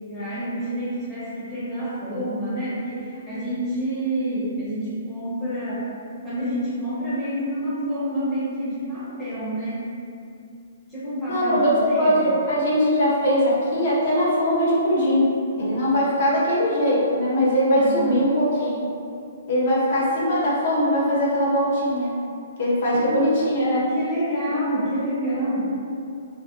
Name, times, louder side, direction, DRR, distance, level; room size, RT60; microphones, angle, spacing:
voice 1, 0.1-5.8 6.2-9.9 10.9-12.4 17.8-18.1 22.9-25.8, right 1 dB, 10° left, -12 dB, 0.7 m, -28 dB
voice 2, 11.3-15.3 15.6-18.9 19.5-22.1 22.6-23.8, equal, 50° left, -7 dB, 0.7 m, -21 dB
2.4 x 2.1 x 2.4 m, 2.5 s
hypercardioid pair, 160°, 0 cm